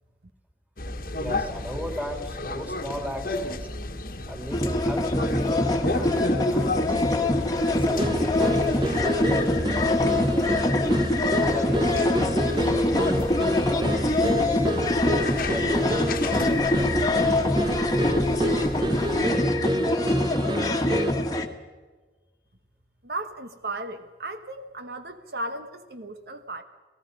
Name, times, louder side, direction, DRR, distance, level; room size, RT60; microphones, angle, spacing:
sound 1, 0.8-19.2, left 2 dB, 50° left, 1.4 m, -34 dB
voice 1, 1.2-3.8 4.3-7.2 7.7-10.9 11.4-15.0 15.4-17.3 17.7-19.6 19.9-20.7, equal, 10° right, 3 dB, 3.3 m, -38 dB
sound 2, 4.5-21.5, left 1 dB, 20° left, 1.5 m, -24 dB
sound 3, 8.0-21.3, right 1 dB, 25° right, 0.7 m, -30 dB
voice 2, 23.0-26.6, right 2 dB, 60° right, 8 dB, 1.2 m, -35 dB
29.0 x 18.5 x 5.4 m, 1.4 s
head